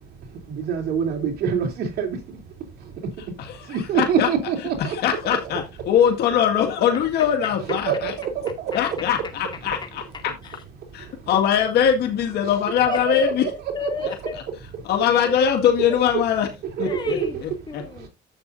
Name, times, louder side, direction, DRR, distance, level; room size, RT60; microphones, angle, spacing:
voice 1, 0.5-2.2 3.7-5.0 5.2-5.6 7.9-8.7 12.9-13.5 13.8-14.1 16.1-16.2 16.8-17.3, right 7 dB, 70° right, 3.2 m, -25 dB
voice 2, 3.9-4.3 4.8-8.1 8.7-10.3 10.9-13.5 14.8-16.5 16.8-17.8, left 9 dB, 75° left, 2.0 m, -22 dB
voice 3, 10.1-10.6 12.9-13.3 13.7-14.4 15.1-16.2 16.8-17.4 17.7-18.1, left 4 dB, 25° left, 2.3 m, -32 dB
11.0 x 8.0 x 2.6 m
cardioid pair, 110°, 17 cm